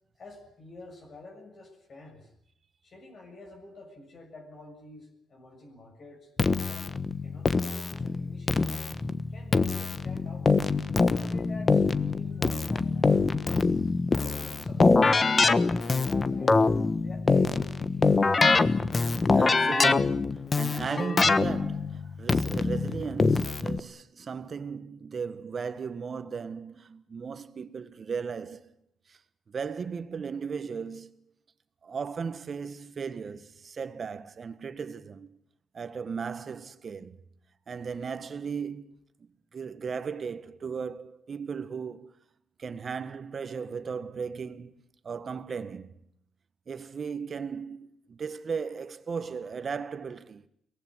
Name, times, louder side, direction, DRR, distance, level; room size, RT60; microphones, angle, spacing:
voice 1, 0.2-2.3 2.8-6.3 6.7-6.9 7.2-8.9 9.3-10.5 11.1-13.5 14.2-18.2, left 2 dB, 45° left, 7.4 m, -48 dB
Keyboard (musical), 6.4-23.8, left 4 dB, 30° left, 1.3 m, -24 dB
voice 2, 19.3-28.7 29.5-31.1 31.8-35.3 35.7-37.2 37.7-38.9 39.5-42.1 42.6-44.7 45.0-45.9 46.7-50.4, right 6 dB, 45° right, 1.6 m, -36 dB
23.0 x 19.0 x 9.8 m
cardioid pair, 90°, 0 cm